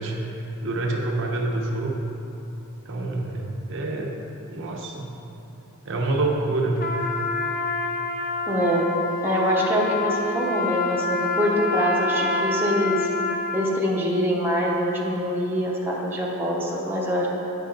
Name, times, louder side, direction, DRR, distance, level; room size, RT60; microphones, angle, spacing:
voice 1, 0.0-2.0 2.9-4.1 4.5-5.1 5.8-6.8, right 2 dB, 55° right, 0 dB, 0.8 m, -27 dB
Trumpet, 6.8-13.8, left 2 dB, 40° left, 0.6 m, -27 dB
voice 2, 8.5-8.9 9.2-13.1 13.5-17.3, equal, 10° right, -4 dB, 0.8 m, -24 dB
8.9 x 5.8 x 3.8 m, 2.9 s
head